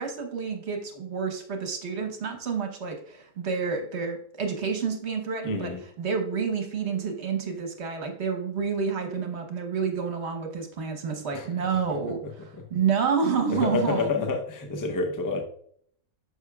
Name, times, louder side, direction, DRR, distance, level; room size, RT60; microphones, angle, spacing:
voice 1, 0.0-5.7 6.0-14.1, right 6 dB, 50° right, 4 dB, 1.2 m, -29 dB
voice 2, 5.4-5.8 11.3-11.5 11.9-12.3 12.6-12.7 13.5-15.4, left 3 dB, 25° left, 4 dB, 0.4 m, -29 dB
9.6 x 6.5 x 2.3 m, 0.64 s
omnidirectional pair, 1.6 m